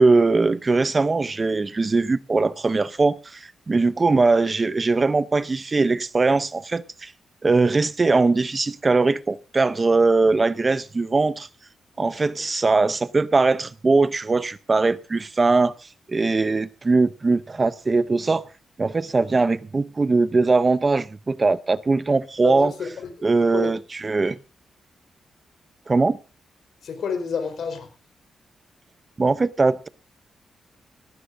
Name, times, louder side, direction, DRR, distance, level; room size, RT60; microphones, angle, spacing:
voice 1, 0.0-7.1 7.4-11.5 12.0-15.7 16.1-18.5 18.8-22.7 23.2-24.4 25.9-26.2 29.2-29.9, right 3 dB, 30° right, 0.6 m, -21 dB
voice 2, 22.4-23.3 23.5-23.7 26.8-27.9, left 6 dB, 70° left, 4.1 m, -29 dB
18.0 x 16.5 x 2.6 m
cardioid pair, 105°, 0 cm